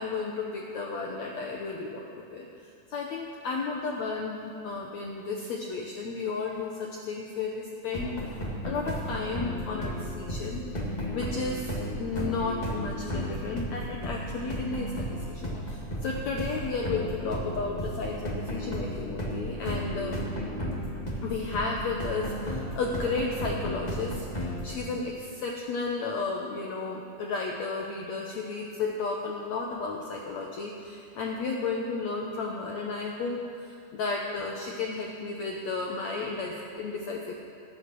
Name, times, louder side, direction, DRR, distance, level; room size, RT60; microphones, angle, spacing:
voice 1, 0.0-2.0 2.3-8.4 8.6-10.6 11.1-20.3 21.2-37.4, left 4 dB, 75° left, -1 dB, 1.7 m, -33 dB
sound 1, 7.9-24.7, equal, 40° left, 0.5 m, -34 dB
20.0 x 8.4 x 6.2 m, 2.5 s
omnidirectional pair, 4.5 m